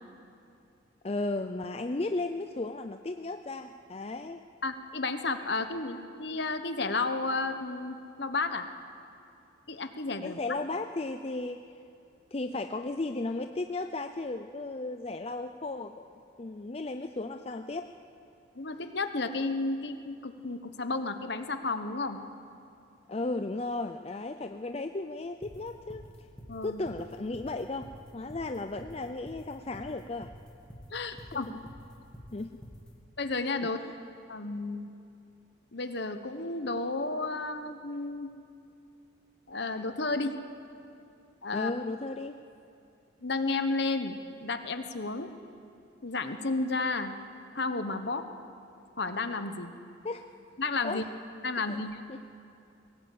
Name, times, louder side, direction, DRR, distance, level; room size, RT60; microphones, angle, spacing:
voice 1, 1.0-4.4 10.2-11.7 12.3-16.1 16.4-17.9 23.1-26.1 26.6-30.3 31.3-31.4 32.3-32.6 33.6-34.0 41.5-42.3 50.0-50.2 50.8-51.0 51.7-51.8 52.1-52.2, left 2 dB, 30° left, 7 dB, 0.5 m, -35 dB
voice 2, 4.6-8.7 9.7-10.4 18.6-22.2 26.5-26.8 30.9-31.5 33.2-33.8 34.3-34.9 35.7-38.3 39.5-40.3 41.4-41.7 43.2-45.3 46.0-47.1 47.5-48.2 49.0-49.7 50.6-51.0 51.4-52.0, left 3 dB, 55° left, 8 dB, 1.2 m, -32 dB
sound 1, 25.4-32.9, equal, 5° left, 2.2 m, -47 dB
22.0 x 17.5 x 8.7 m, 2.6 s
head